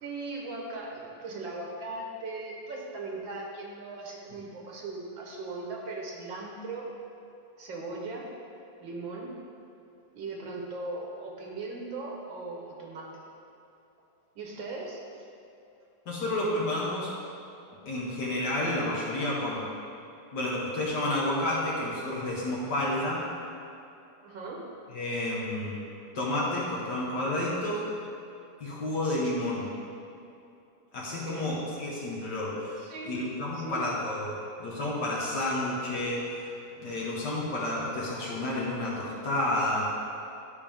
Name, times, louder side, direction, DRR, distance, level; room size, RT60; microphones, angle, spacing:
voice 1, 0.0-6.9 7.6-8.3 8.8-9.3 10.2-13.2 14.4-15.0 24.2-24.7 31.1-31.5 32.8-33.2 33.5-33.8, right 3 dB, 85° right, -2 dB, 2.0 m, -38 dB
voice 2, 16.1-17.1 17.9-19.7 20.3-23.3 24.9-25.8 26.1-27.8 28.6-29.7 30.9-36.5 36.8-39.9, left 1 dB, 65° left, -5 dB, 1.8 m, -30 dB
12.0 x 5.2 x 3.6 m, 2.6 s
omnidirectional pair, 2.0 m